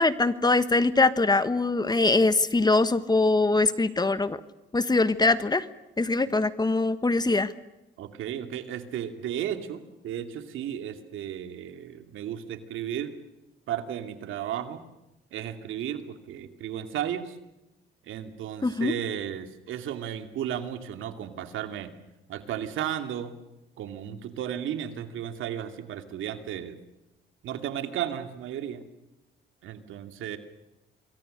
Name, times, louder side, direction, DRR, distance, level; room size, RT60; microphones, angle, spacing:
voice 1, 0.0-4.4 4.7-5.6 6.0-7.5 18.6-18.9, left 3 dB, 20° left, 13 dB, 1.4 m, -23 dB
voice 2, 8.0-13.1 13.7-14.8 15.3-17.4 18.0-22.0 22.3-23.3 23.8-26.8 27.4-28.8 29.6-30.4, right 10 dB, 85° right, 8 dB, 2.6 m, -34 dB
27.0 x 23.0 x 6.7 m, 0.94 s
cardioid pair, 90°, 20 cm